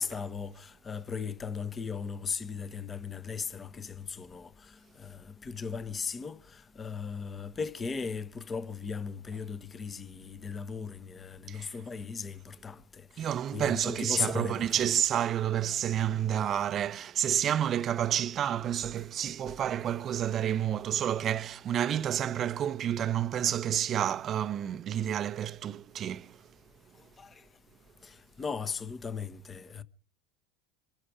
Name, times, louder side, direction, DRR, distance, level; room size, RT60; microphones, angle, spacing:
voice 1, 0.0-14.9 19.5-19.6 27.0-27.4 28.0-29.8, left 5 dB, 20° left, 1.0 m, -37 dB
voice 2, 13.2-26.4, right 10 dB, 35° right, 0.7 m, -30 dB
25.0 x 11.0 x 4.9 m
supercardioid pair, 120°, 0 cm